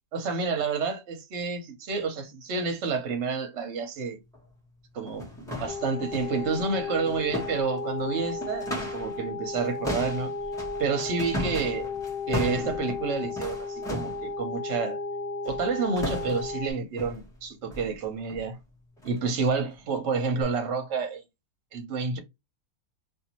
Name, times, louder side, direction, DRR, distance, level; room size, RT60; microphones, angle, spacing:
voice 1, 0.1-4.2 4.9-5.2 5.6-10.3 10.8-11.9 12.3-15.0 15.4-18.6 19.0-21.2 21.7-22.2, right 5 dB, 60° right, 0.9 m, -29 dB
sound 1, 4.3-4.4 5.0-9.2 9.4-14.3 15.4-15.7 16.0-16.6 17.0-17.3 17.7-17.9 18.3-18.5 19.0-19.2 19.7-19.8 20.4-20.5, equal, 5° left, 0.9 m, -36 dB
sound 2, 5.7-16.7, left 4 dB, 60° left, 0.9 m, -34 dB
2.6 x 2.5 x 2.8 m
omnidirectional pair, 1.6 m